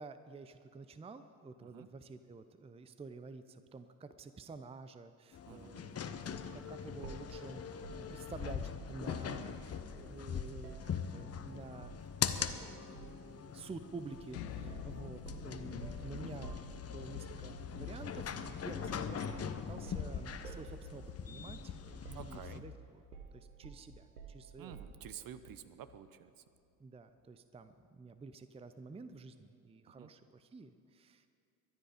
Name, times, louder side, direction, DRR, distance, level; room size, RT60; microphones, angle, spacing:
voice 1, 0.0-7.6 7.9-11.9 12.3-22.7 23.3-24.8 26.8-31.3, right 4 dB, 15° right, 11 dB, 0.6 m, -50 dB
sound 1, 5.3-22.6, left 7 dB, 30° left, 1.0 m, -42 dB
voice 2, 5.5-6.0 22.1-22.6 24.6-26.4 30.0-30.1, right 10 dB, 45° right, 12 dB, 0.9 m, -50 dB
sound 2, 6.3-6.5 7.0-9.6 10.0-11.5 11.8-12.0 12.4-13.3 14.1-14.3 14.7-17.2 18.8-19.0 19.3-21.8 22.0-22.7 23.1-25.1, right 5 dB, 85° right, 1.5 m, -52 dB
sound 3, 14.3-26.1, left 7 dB, 70° left, 1.1 m, -49 dB
23.5 x 10.0 x 5.1 m, 2.4 s
hypercardioid pair, 60°, 47 cm